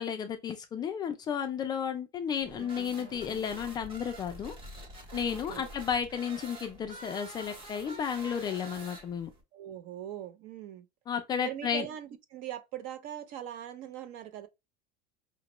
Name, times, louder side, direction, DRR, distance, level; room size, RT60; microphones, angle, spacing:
voice 1, 0.0-4.6 5.1-9.3 11.1-11.9, left 8 dB, 20° left, 0.4 m, -33 dB
sound 1, 2.4-9.4, right 1 dB, 25° right, 1.0 m, -47 dB
voice 2, 5.1-5.7 9.5-10.9 11.4-14.5, right 11 dB, 45° right, 0.5 m, -41 dB
5.0 x 2.3 x 2.9 m
cardioid pair, 175°, 21 cm